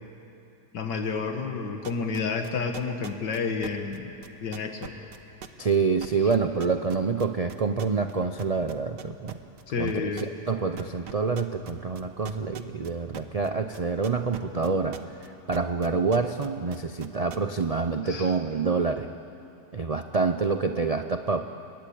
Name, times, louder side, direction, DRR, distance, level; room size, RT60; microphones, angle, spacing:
voice 1, 0.7-4.1 4.4-4.9 9.7-10.3 18.0-18.4, left 5 dB, 85° left, 4 dB, 2.1 m, -30 dB
sound 1, 1.8-8.1 8.4-9.6 9.9-10.5 10.8-15.3 15.5-17.6, right 8 dB, 75° right, 1.7 m, -41 dB
voice 2, 5.6-9.4 9.8-19.1 19.7-21.5, right 4 dB, 55° right, 7 dB, 0.4 m, -27 dB
28.5 x 23.0 x 8.6 m, 2.8 s
omnidirectional pair, 1.8 m